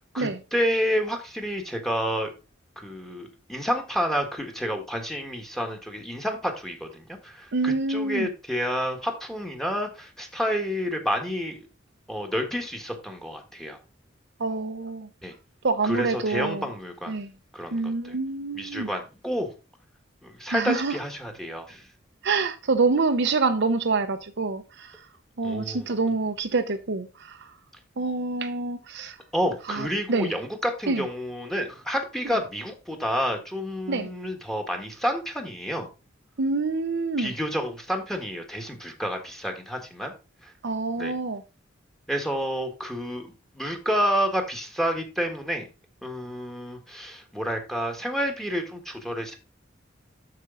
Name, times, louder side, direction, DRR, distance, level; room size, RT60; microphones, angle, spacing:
voice 1, 0.1-2.3 2.8-11.7 12.1-13.8 15.2-15.3 15.8-17.1 17.5-18.1 18.5-19.5 20.2-21.9 25.4-25.9 29.3-35.9 37.2-40.1 40.4-40.5 41.0-41.1 42.1-45.7 46.0-49.4, equal, ahead, 1.5 m, -29 dB
voice 2, 7.5-8.3 14.4-15.1 15.6-16.6 17.1-17.3 17.7-18.9 20.5-20.9 22.2-24.9 25.4-27.1 28.0-29.1 29.7-30.3 30.9-31.0 33.9-34.1 36.4-37.3 40.6-41.4, right 3 dB, 65° right, 0.8 m, -26 dB
7.5 x 6.8 x 3.8 m
head